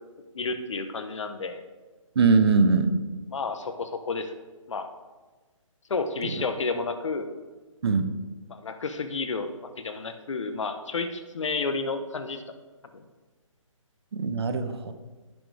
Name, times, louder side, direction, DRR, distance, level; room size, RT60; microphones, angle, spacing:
voice 1, 0.3-1.6 3.3-4.3 4.7-4.9 5.9-7.3 8.5-9.5 9.8-12.5 12.9-13.0, left 4 dB, 60° left, 8 dB, 1.2 m, -31 dB
voice 2, 2.2-3.0 6.2-6.4 7.8-8.1 14.1-14.9, right 4 dB, 50° right, 10 dB, 0.9 m, -22 dB
17.5 x 6.5 x 3.5 m, 1.3 s
hypercardioid pair, 155°, 17 cm